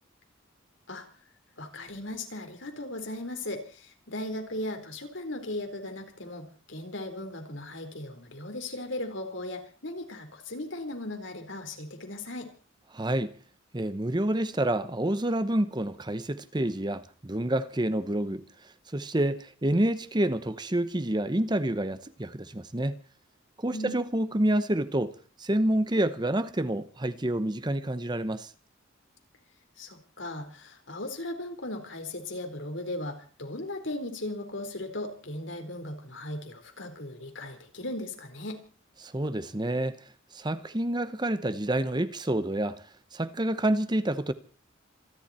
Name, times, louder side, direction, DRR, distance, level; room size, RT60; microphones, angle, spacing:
voice 1, 1.6-12.5 23.7-24.0 29.8-38.6, left 1 dB, 70° left, 4.1 m, -37 dB
voice 2, 12.9-13.3 13.7-18.5 18.9-23.0 23.6-28.5 39.0-40.0 40.3-42.8 43.1-44.3, right 1 dB, 20° right, 0.9 m, -28 dB
27.0 x 11.5 x 4.3 m
head